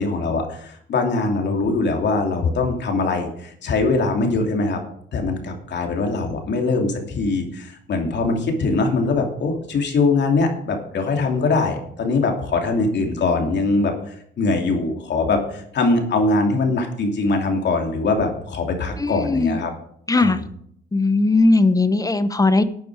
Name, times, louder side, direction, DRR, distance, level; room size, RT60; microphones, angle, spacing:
voice 1, 0.0-4.8 5.1-19.7 20.1-20.4, left 3 dB, 60° left, 3 dB, 2.9 m, -22 dB
voice 2, 19.0-19.6 20.1-20.4 20.9-22.6, left 3 dB, 15° left, 13 dB, 0.8 m, -18 dB
12.0 x 9.2 x 4.8 m, 0.68 s
cardioid pair, 90°, 20 cm